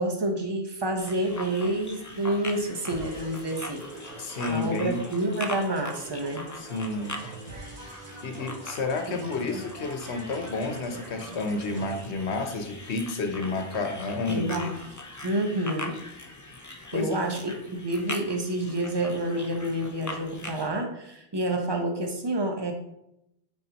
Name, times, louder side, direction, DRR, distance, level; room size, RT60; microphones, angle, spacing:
voice 1, 0.0-3.8 4.5-6.5 9.1-9.3 14.3-14.7 15.2-16.0 16.9-22.7, right 1 dB, 25° right, 3 dB, 0.9 m, -28 dB
sound 1, 1.0-20.7, left 2 dB, 25° left, 0.5 m, -41 dB
sound 2, 2.9-12.1, right 2 dB, 40° right, 1.2 m, -44 dB
voice 2, 4.2-5.0 6.6-7.2 8.2-14.7 16.9-17.1, left 3 dB, 90° left, 5 dB, 1.2 m, -30 dB
9.4 x 4.4 x 2.9 m, 0.82 s
omnidirectional pair, 1.1 m